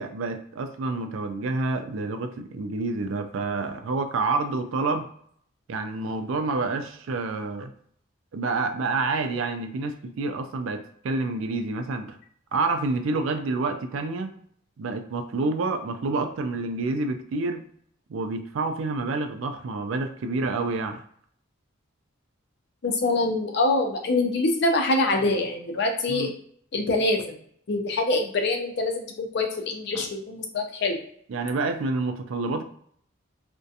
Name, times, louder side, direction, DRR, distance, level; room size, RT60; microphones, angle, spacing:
voice 1, 0.0-5.1 5.7-7.7 8.3-12.2 12.5-14.3 14.8-17.6 18.1-21.0 26.1-26.3 29.9-30.1 31.3-32.6, right 3 dB, 75° right, 7 dB, 0.4 m, -28 dB
voice 2, 22.8-26.3 26.7-27.4 27.7-31.0, left 2 dB, 55° left, 3 dB, 0.5 m, -25 dB
2.4 x 2.1 x 2.7 m, 0.64 s
head